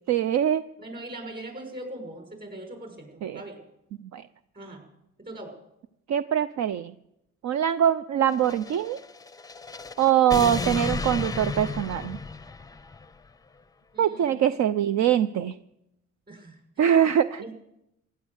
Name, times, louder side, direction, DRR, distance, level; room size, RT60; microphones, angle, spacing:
voice 1, 0.1-0.6 3.2-3.4 4.1-4.2 6.1-6.9 7.4-9.0 10.0-12.2 14.0-15.5 16.8-17.4, right 10 dB, 65° right, 12 dB, 0.6 m, -23 dB
voice 2, 0.8-3.7 4.5-4.9 5.2-5.5 13.9-14.6 16.3-16.6 17.4-17.5, right 1 dB, 35° right, 3 dB, 6.2 m, -41 dB
sound 1, 8.3-13.1, left 4 dB, 10° left, 0.5 m, -33 dB
15.5 x 10.5 x 8.1 m, 0.83 s
cardioid pair, 90°, 30 cm